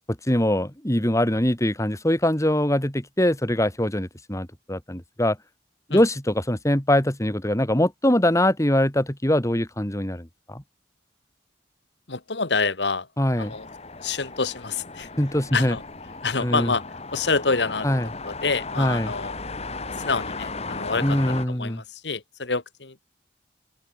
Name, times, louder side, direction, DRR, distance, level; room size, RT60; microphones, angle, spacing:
voice 1, 0.3-5.4 5.9-10.6 13.2-13.5 15.2-15.7 16.4-16.7 17.8-18.1 18.8-19.1 21.0-21.8, left 1 dB, 15° left, 2.8 m, -23 dB
voice 2, 12.1-13.1 13.4-13.7 14.0-15.1 15.5-15.8 16.2-16.8 17.1-19.4 19.8-21.2 21.5-23.0, left 4 dB, 75° left, 1.8 m, -27 dB
sound 1, 13.4-21.5, left 3 dB, 35° left, 3.0 m, -36 dB
open air
head